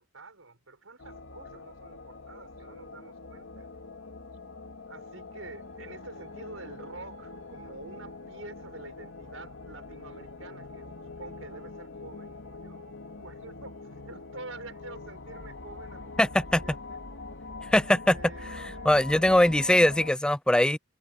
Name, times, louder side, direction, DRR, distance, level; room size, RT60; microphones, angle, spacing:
voice 1, 0.0-3.7 4.9-12.8 13.2-16.3 16.6-17.0 18.1-19.4, right 3 dB, 85° right, 4.8 m, -47 dB
sound 1, 1.0-20.1, left 3 dB, 85° left, 2.4 m, -44 dB
voice 2, 16.2-16.6 17.7-18.2 18.9-20.8, left 1 dB, 5° left, 0.3 m, -21 dB
head